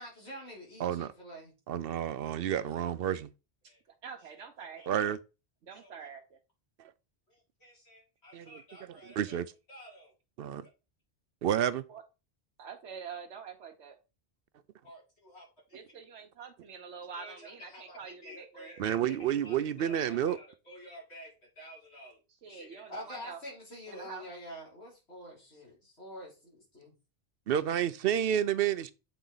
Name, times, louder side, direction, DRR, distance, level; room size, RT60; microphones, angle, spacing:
voice 1, 0.0-1.5 3.7-3.8 4.6-4.9 5.7-6.1 7.3-9.4 9.7-10.1 10.6-10.7 14.8-15.8 17.2-22.2 22.5-26.9, equal, 75° left, 3.8 m, -48 dB
voice 2, 1.7-3.3 4.9-5.2 8.3-8.6 8.9-9.5 10.4-10.6 11.4-11.8 18.8-20.4 27.5-28.9, right 10 dB, 65° right, 0.7 m, -30 dB
voice 3, 4.0-5.0 5.6-6.4 11.9-12.0 12.6-14.0 15.7-18.8 22.4-23.4 23.9-24.2, right 6 dB, 90° right, 1.2 m, -46 dB
8.0 x 4.2 x 3.8 m
omnidirectional pair, 1.1 m